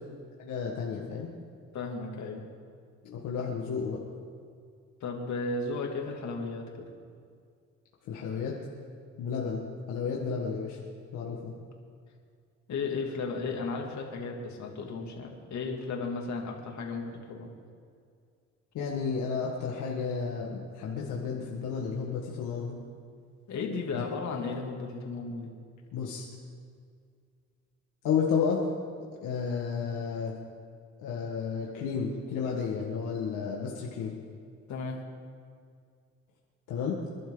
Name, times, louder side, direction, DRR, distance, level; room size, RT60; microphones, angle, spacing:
voice 1, 0.4-1.3 3.0-4.0 8.1-8.6 9.2-10.8 11.1-11.5 18.7-22.8 23.9-24.0 25.9-26.3 28.0-28.6 29.2-30.3 31.0-34.1 36.7-37.0, left 6 dB, 90° left, -3 dB, 1.9 m, -32 dB
voice 2, 1.7-2.4 5.0-6.9 12.7-17.5 23.5-25.5 34.7-35.0, left 4 dB, 65° left, 0 dB, 2.8 m, -34 dB
27.0 x 11.5 x 4.0 m, 2.2 s
cardioid pair, 90°, 30 cm